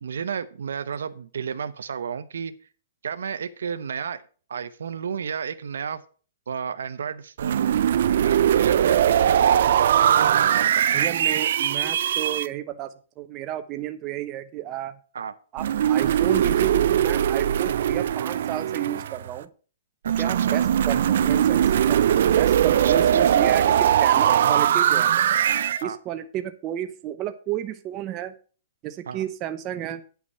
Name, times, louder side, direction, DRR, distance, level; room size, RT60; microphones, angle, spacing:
voice 1, 0.0-2.5 3.0-4.2 4.5-6.0 6.5-7.8 8.2-10.8 15.1-15.3 20.0-20.6 22.7-23.3 25.8-26.0 29.1-29.2, right 7 dB, 85° right, 13 dB, 0.8 m, -32 dB
sound 1, 7.4-12.5 15.6-19.4 20.1-25.8, right 10 dB, 65° right, 0.4 m, -20 dB
voice 2, 10.9-15.0 15.5-19.5 20.2-22.0 22.4-25.2 25.8-28.3 28.8-30.0, right 12 dB, 25° right, 9 dB, 0.8 m, -32 dB
9.6 x 5.9 x 5.5 m, 0.40 s
hypercardioid pair, 155°, 0 cm